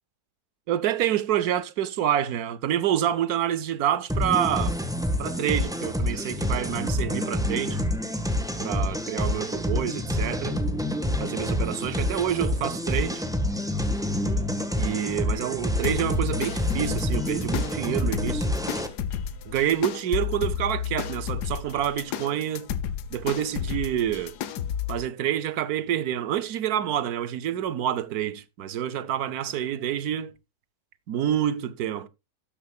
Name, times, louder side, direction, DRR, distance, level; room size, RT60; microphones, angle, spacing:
voice 1, 0.7-4.8 5.2-7.8 8.6-10.6 11.2-13.2 14.8-18.5 19.5-22.7 23.1-24.4 24.9-30.3 31.1-32.1, right 10 dB, 70° right, 1.2 m, -27 dB
sound 1, 4.1-18.9, left 1 dB, ahead, 1.1 m, -27 dB
sound 2, 15.8-25.0, left 9 dB, 75° left, 1.4 m, -32 dB
12.5 x 10.5 x 2.3 m
omnidirectional pair, 1.8 m